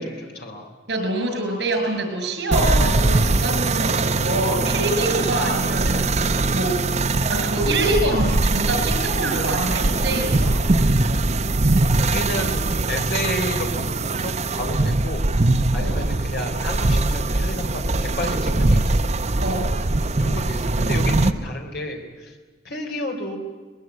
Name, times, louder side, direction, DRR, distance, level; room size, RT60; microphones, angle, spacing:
voice 1, 0.0-0.7 12.0-15.2 15.7-19.0 20.2-22.4 22.6-23.4, left 1 dB, 65° left, 3 dB, 3.7 m, -31 dB
voice 2, 0.9-6.2 6.5-6.8 7.4-10.5 15.8-16.0 19.4-19.7, right 1 dB, 75° right, 5 dB, 6.3 m, -25 dB
sound 1, 2.5-21.3, right 2 dB, 40° right, 0.8 m, -21 dB
22.0 x 20.5 x 9.4 m, 1.4 s
head